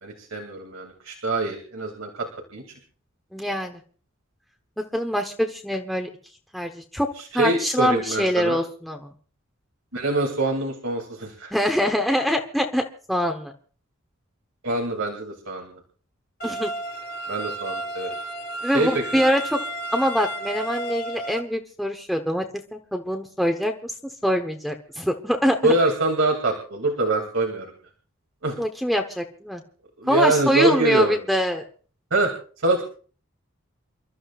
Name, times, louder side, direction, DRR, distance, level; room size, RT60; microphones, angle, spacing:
voice 1, 0.0-2.3 2.5-2.6 7.2-8.6 9.9-11.5 14.6-15.7 17.3-18.1 18.7-19.2 25.6-27.7 28.4-28.5 30.0-31.2 32.1-32.3 32.6-32.8, right 2 dB, 80° right, 2 dB, 2.7 m, -24 dB
voice 2, 3.3-3.8 4.8-6.1 6.5-7.1 7.3-9.1 11.5-13.5 16.4-16.7 18.6-19.6 19.9-22.4 22.7-23.9 24.2-25.7 28.6-29.6 30.1-31.6, equal, ahead, 3 dB, 1.1 m, -24 dB
sound 1, 16.4-21.4, right 2 dB, 45° left, 2.0 m, -32 dB
29.0 x 13.5 x 2.5 m, 0.42 s
head